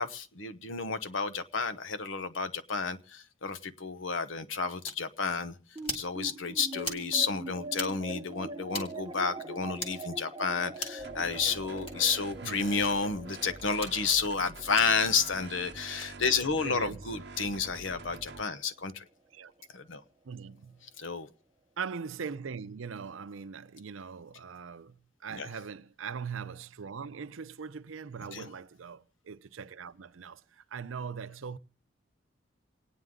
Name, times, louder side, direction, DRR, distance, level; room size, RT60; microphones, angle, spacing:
voice 1, 0.0-5.5 5.9-19.0 19.7-20.0 21.0-21.3 25.3-25.5 28.3-28.5, left 5 dB, 80° left, 0.9 m, -31 dB
sound 1, 4.9-5.0 5.8-6.1 6.8-7.1 7.7-7.9 8.7-8.9 9.8-9.9 10.7-11.0 11.8-12.0 12.8-12.9 13.7-13.9 14.8-14.9 15.9-16.1, left 1 dB, 30° left, 2.3 m, -38 dB
sound 2, 5.8-18.4, right 2 dB, 20° right, 0.8 m, -44 dB
sound 3, 11.0-18.4, right 3 dB, 60° right, 1.0 m, -46 dB
voice 2, 12.4-12.7 16.6-17.1 17.5-17.7 18.3-18.4 19.3-19.7 20.3-20.9 21.8-31.6, right 6 dB, 90° right, 0.6 m, -41 dB
28.0 x 9.5 x 3.7 m
head